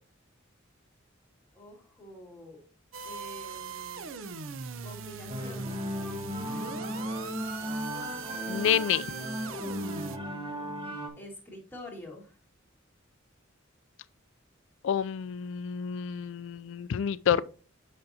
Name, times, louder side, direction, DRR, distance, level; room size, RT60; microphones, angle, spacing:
voice 1, 1.5-2.6 3.0-4.1 4.8-5.9 11.2-12.4, left 1 dB, 10° left, 2.0 m, -47 dB
sound 1, 2.9-10.2, right 5 dB, 75° right, 0.5 m, -40 dB
sound 2, 5.3-11.1, equal, 25° right, 1.1 m, -36 dB
voice 2, 8.5-9.1 14.8-17.4, left 8 dB, 65° left, 0.3 m, -28 dB
7.9 x 5.2 x 2.7 m
head